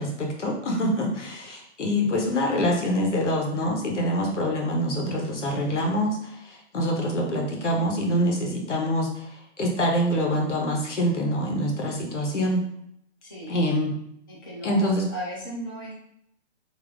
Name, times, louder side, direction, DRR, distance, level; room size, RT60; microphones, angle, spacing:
voice 1, 0.0-12.6 13.5-13.9 14.6-15.1, equal, 80° left, 1 dB, 1.4 m, -25 dB
voice 2, 13.2-13.6 14.3-15.9, right 1 dB, 20° left, -6 dB, 0.5 m, -36 dB
3.7 x 3.0 x 3.8 m, 0.73 s
hypercardioid pair, 170°, 35 cm